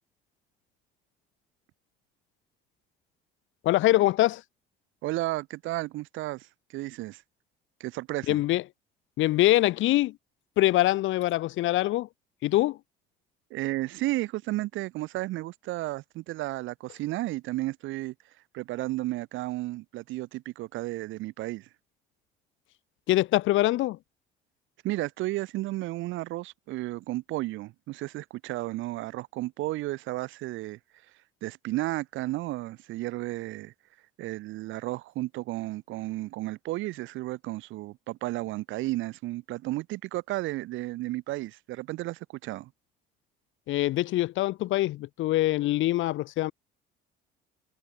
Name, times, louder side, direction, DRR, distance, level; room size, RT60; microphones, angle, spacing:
voice 1, 3.6-4.4 8.3-8.6 9.2-10.2 10.6-12.1 12.4-12.8 23.1-24.0 43.7-46.5, left 16 dB, 65° left, 3.5 m, -24 dB
voice 2, 5.0-6.5 6.7-7.2 7.8-8.4 13.5-18.1 18.5-21.7 24.8-30.8 31.4-33.7 34.2-42.7, right 18 dB, 70° right, 1.4 m, -33 dB
supercardioid pair, 80°, 21 cm